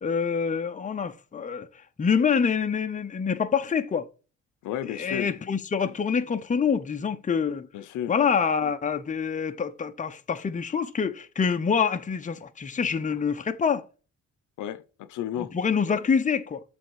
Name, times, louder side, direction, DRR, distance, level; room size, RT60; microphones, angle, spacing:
voice 1, 0.0-1.7 2.0-4.1 4.8-7.7 8.1-13.8 15.4-16.6, left 6 dB, 25° left, 0.7 m, -26 dB
voice 2, 4.6-5.4 7.7-8.1 14.6-15.5, left 11 dB, 80° left, 0.7 m, -33 dB
7.6 x 3.5 x 4.7 m
cardioid pair, 90°, 30 cm